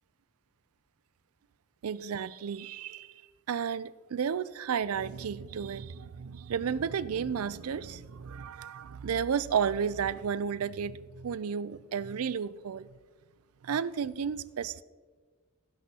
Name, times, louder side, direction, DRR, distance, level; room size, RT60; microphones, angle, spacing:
voice 1, 1.8-3.1 3.5-12.9 13.6-14.8, right 7 dB, 85° right, 18 dB, 0.4 m, -32 dB
18.5 x 10.5 x 2.8 m, 1.5 s
head